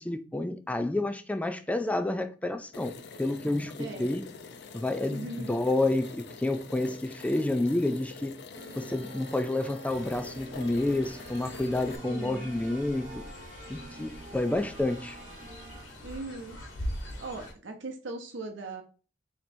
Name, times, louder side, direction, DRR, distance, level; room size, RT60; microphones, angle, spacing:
voice 1, 0.0-2.9 3.2-4.2 4.7-8.3 8.8-13.1 13.7-15.2, left 2 dB, 10° left, 0.3 m, -29 dB
sound 1, 2.7-12.0, left 4 dB, 65° left, 0.5 m, -46 dB
voice 2, 3.8-4.2 5.1-5.5 12.0-12.5 16.0-16.6 17.2-18.8, right 2 dB, 80° right, 0.7 m, -39 dB
sound 2, 8.5-15.8, right 1 dB, 40° right, 1.1 m, -48 dB
Fowl, 9.9-17.5, equal, 85° left, 1.2 m, -43 dB
3.1 x 2.9 x 4.2 m
head